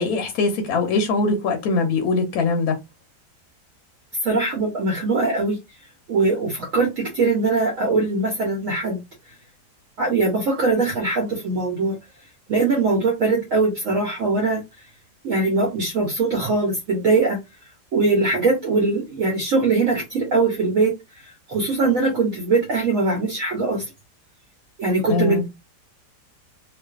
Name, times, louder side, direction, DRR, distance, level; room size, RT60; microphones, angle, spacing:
voice 1, 0.0-2.8 25.1-25.5, left 3 dB, 70° left, 1.0 m, -22 dB
voice 2, 4.2-5.6 6.1-9.0 10.0-12.0 12.5-14.6 15.2-17.4 17.9-20.9 21.2-23.9 24.8-25.5, right 3 dB, 65° right, 0.9 m, -21 dB
2.5 x 2.3 x 2.3 m
omnidirectional pair, 1.8 m